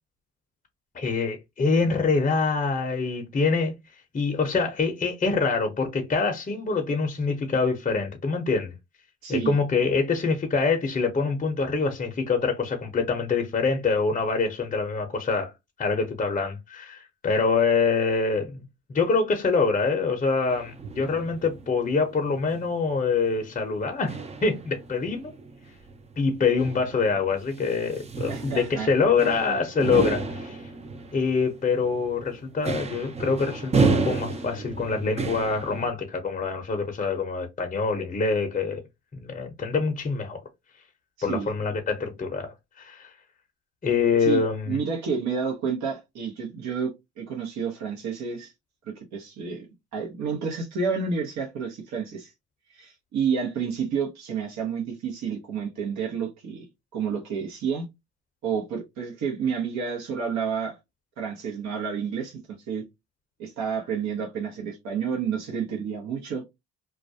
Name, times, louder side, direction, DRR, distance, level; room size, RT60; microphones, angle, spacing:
voice 1, 0.9-3.7 4.1-8.7 9.3-15.5 15.8-18.6 18.9-24.2 24.4-25.3 26.2-30.6 31.1-38.8 39.1-40.4 41.2-43.1 43.8-44.7, left 4 dB, 25° left, 0.6 m, -25 dB
voice 2, 9.2-9.6 28.3-28.9 41.2-41.5 44.2-46.9 47.2-48.5 48.9-49.7 49.9-52.3 52.7-56.7 56.9-57.8 58.4-60.8 61.2-62.8 63.4-66.4, right 6 dB, 65° right, 0.8 m, -30 dB
sound 1, 20.5-35.9, right 4 dB, 20° right, 0.5 m, -32 dB
2.3 x 2.1 x 2.6 m
supercardioid pair, 70°, 30 cm